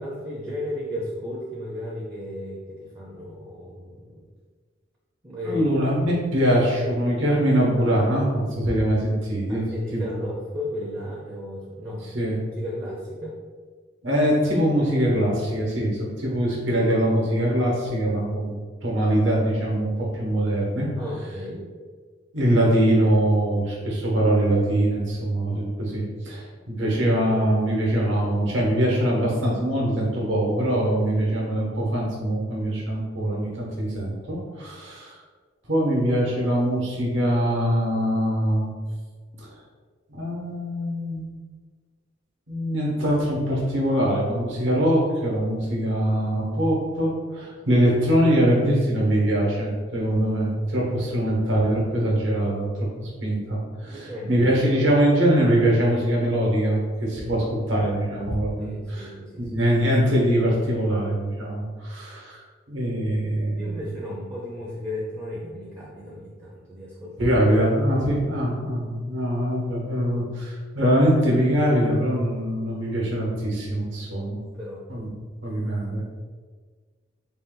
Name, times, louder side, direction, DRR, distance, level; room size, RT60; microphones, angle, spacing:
voice 1, 0.0-4.3 5.2-5.7 9.5-12.3 12.5-13.4 21.0-21.7 26.6-26.7 50.0-50.2 53.8-54.5 54.7-54.8 57.0-57.3 58.6-59.6 63.6-67.3 74.1-74.8, left 1 dB, 15° right, -4 dB, 0.4 m, -35 dB
voice 2, 5.4-10.2 12.1-12.4 14.0-18.5 18.8-20.9 22.3-35.2 35.7-38.7 39.4-39.5 40.1-41.3 42.5-52.7 53.0-59.1 59.5-63.7 67.2-74.4 74.9-75.1 75.4-76.0, right 1 dB, 70° right, -3 dB, 1.1 m, -23 dB
3.9 x 2.2 x 3.8 m, 1.5 s
head